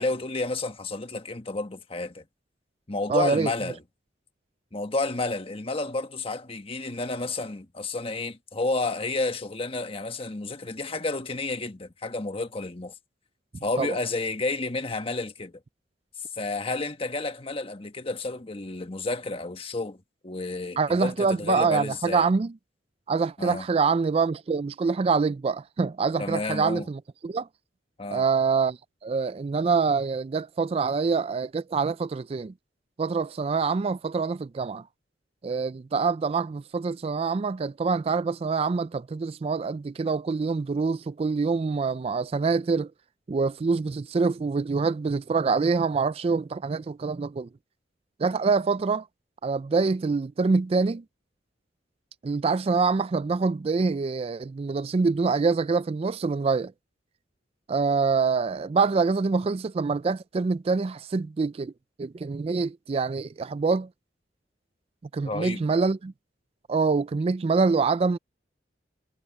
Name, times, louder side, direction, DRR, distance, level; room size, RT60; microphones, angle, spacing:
voice 1, 0.0-2.2 2.9-3.8 4.7-12.9 13.6-15.5 16.4-22.3 23.4-23.7 26.2-26.9 28.0-28.2 65.2-65.6, left 2 dB, 30° left, 1.3 m, -31 dB
voice 2, 3.1-3.5 13.8-13.9 20.8-22.5 23.1-27.5 28.1-32.5 33.0-34.9 35.4-42.9 43.3-47.5 48.2-49.1 49.4-51.0 52.2-56.7 57.7-61.7 62.0-63.9 65.1-66.1 66.7-68.2, right 4 dB, 35° right, 0.3 m, -25 dB
head